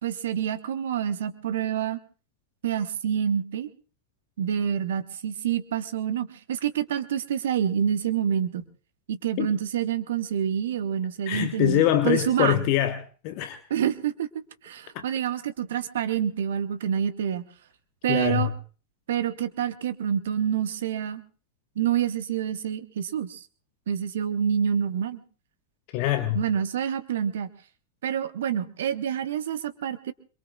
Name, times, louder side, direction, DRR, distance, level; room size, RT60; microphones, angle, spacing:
voice 1, 0.0-2.0 2.6-3.7 4.4-8.6 9.1-12.6 13.7-14.3 14.6-17.5 18.0-18.5 19.1-21.2 21.8-23.5 23.9-25.2 26.3-27.5 28.0-30.1, right 9 dB, 60° right, 13 dB, 1.0 m, -27 dB
voice 2, 11.3-13.0 13.2-13.6 14.9-15.0 18.1-18.5 25.9-26.4, left 13 dB, 45° left, 8 dB, 1.1 m, -24 dB
26.5 x 22.5 x 2.4 m, 0.39 s
figure-of-eight pair, 90°, 0 cm